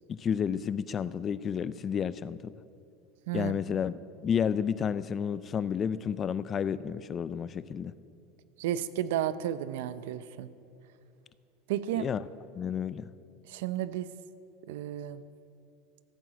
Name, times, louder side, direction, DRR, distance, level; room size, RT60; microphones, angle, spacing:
voice 1, 0.1-2.6 3.3-3.9 4.2-7.9 11.9-12.2 12.5-13.1, left 7 dB, 30° left, 17 dB, 0.4 m, -31 dB
voice 2, 3.3-3.6 8.6-10.5 11.7-12.1 13.4-14.1 14.7-15.2, right 11 dB, 80° right, 15 dB, 0.6 m, -32 dB
15.0 x 9.0 x 7.4 m, 2.5 s
supercardioid pair, 130°, 0 cm